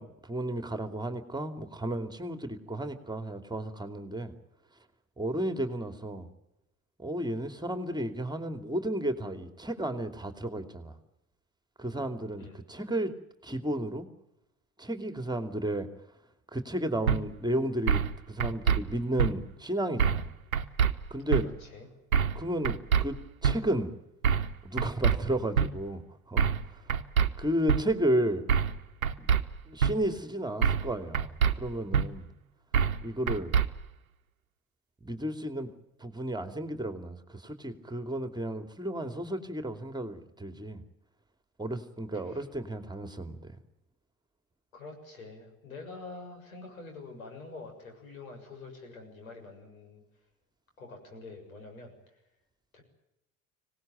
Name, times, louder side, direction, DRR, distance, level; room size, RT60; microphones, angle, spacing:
voice 1, 0.0-4.3 5.2-6.3 7.0-10.9 11.8-13.1 13.4-14.1 14.8-15.9 16.5-18.0 18.3-20.3 21.1-21.5 22.3-23.9 24.6-26.0 26.3-26.5 27.4-28.4 29.2-29.3 29.7-32.3 33.0-33.5 35.0-35.7 36.0-40.8 41.6-43.5, right 1 dB, 10° right, 8 dB, 2.7 m, -33 dB
sound 1, 17.1-17.2 17.9-18.1 18.4-18.8 19.2-19.3 20.0-20.3 20.5-20.9 21.3-21.4 22.1-22.4 22.6-23.0 23.4-23.6 24.2-24.5 24.8-25.2 25.6-25.7 26.4-26.6 26.9-27.3 27.7-27.8 28.5-28.8 29.0-29.4 29.8-29.9 30.6-30.9 31.1-31.5 31.9-32.1 32.7-33.0 33.3-33.7, right 7 dB, 85° right, 1.0 m, -24 dB
voice 2, 21.3-21.9 42.2-42.4 44.7-50.0 50.8-52.2 52.7-52.8, left 3 dB, 80° left, 4 dB, 6.9 m, -46 dB
25.5 x 18.5 x 9.2 m, 0.90 s
figure-of-eight pair, 60°, 41 cm